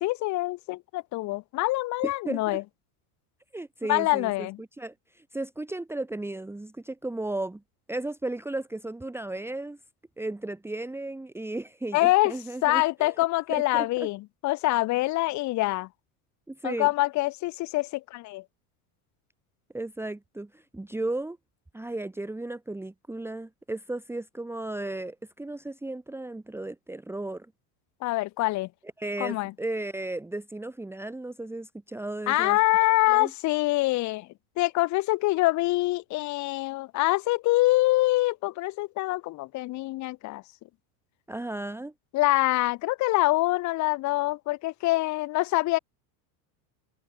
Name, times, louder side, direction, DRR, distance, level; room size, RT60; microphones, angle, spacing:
voice 1, 0.0-2.6 3.9-4.6 11.9-12.3 12.6-15.9 16.6-18.4 28.0-28.7 29.2-29.5 32.3-34.3 34.6-40.4 42.1-45.8, left 19 dB, 40° left, 0.6 m, -25 dB
voice 2, 2.0-2.6 3.5-7.6 7.9-9.8 10.2-13.2 13.5-14.1 16.5-16.9 19.7-21.4 21.7-27.5 29.0-32.6 33.1-33.3 41.3-41.9, right 2 dB, 5° right, 1.4 m, -35 dB
supercardioid pair, 120°, 45 cm